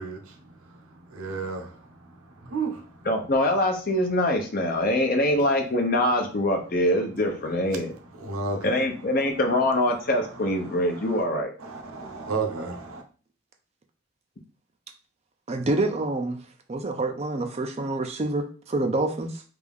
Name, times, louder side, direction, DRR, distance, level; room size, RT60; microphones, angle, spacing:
voice 1, 0.0-3.1 5.3-5.4 8.1-8.9 10.2-11.2 11.6-13.0, right 4 dB, 90° right, 0.8 m, -34 dB
voice 2, 3.1-7.9 8.6-11.5, left 1 dB, 45° left, 0.7 m, -24 dB
voice 3, 15.5-16.4 16.7-19.4, right 2 dB, 30° right, 0.5 m, -27 dB
3.4 x 2.6 x 3.5 m
head